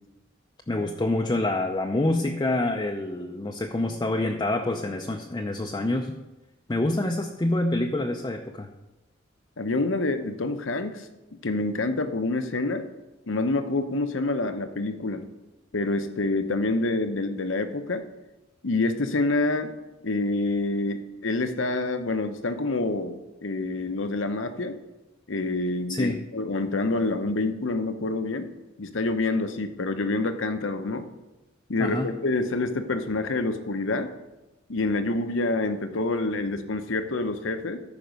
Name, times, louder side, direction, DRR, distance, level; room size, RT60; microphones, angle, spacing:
voice 1, 0.7-6.2 6.7-8.7 25.9-26.2 31.8-32.1, left 2 dB, 20° left, 2 dB, 0.5 m, -26 dB
voice 2, 9.6-11.1 11.4-12.8 13.3-15.2 15.7-18.0 18.6-19.7 20.0-23.2 23.4-24.8 25.3-28.5 28.8-31.1 31.7-34.1 34.7-37.8, left 2 dB, 70° left, 8 dB, 0.8 m, -27 dB
13.5 x 5.3 x 5.2 m, 1.0 s
head